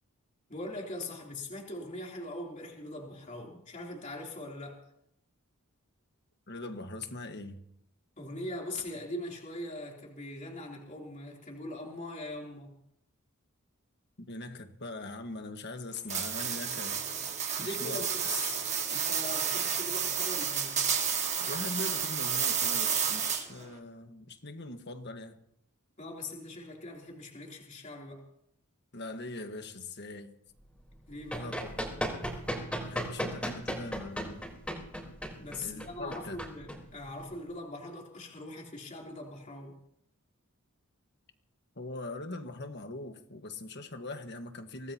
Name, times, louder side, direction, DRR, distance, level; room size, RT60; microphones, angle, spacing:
voice 1, 0.5-4.8 8.2-12.7 17.6-18.6 18.9-20.8 26.0-28.2 31.1-31.5 35.4-39.8, left 1 dB, 35° left, 3.3 m, -41 dB
voice 2, 6.5-7.6 14.3-17.0 17.6-18.0 21.4-25.4 28.9-30.4 31.4-31.8 32.8-34.4 35.6-36.4 41.8-44.9, left 2 dB, 50° left, 1.5 m, -41 dB
sound 1, 16.1-23.6, right 7 dB, 35° right, 1.8 m, -31 dB
Run, 30.9-37.4, equal, 5° left, 3.9 m, -36 dB
24.5 x 18.0 x 2.9 m
head